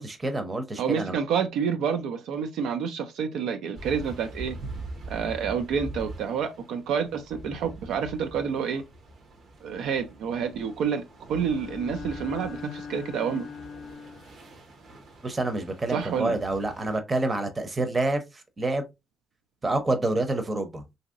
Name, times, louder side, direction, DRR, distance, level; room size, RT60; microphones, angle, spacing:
voice 1, 0.0-1.1 15.2-18.2 18.6-18.8 19.6-20.8, right 2 dB, 25° right, 0.7 m, -27 dB
voice 2, 0.8-4.6 5.1-8.8 9.6-11.0 11.3-13.5 15.9-16.4, right 7 dB, 85° right, 0.4 m, -28 dB
sound 1, 3.7-17.0, right 2 dB, 70° right, 0.9 m, -43 dB
Bowed string instrument, 11.4-14.5, left 6 dB, 65° left, 0.4 m, -41 dB
2.9 x 2.7 x 2.5 m
cardioid pair, 90°, 0 cm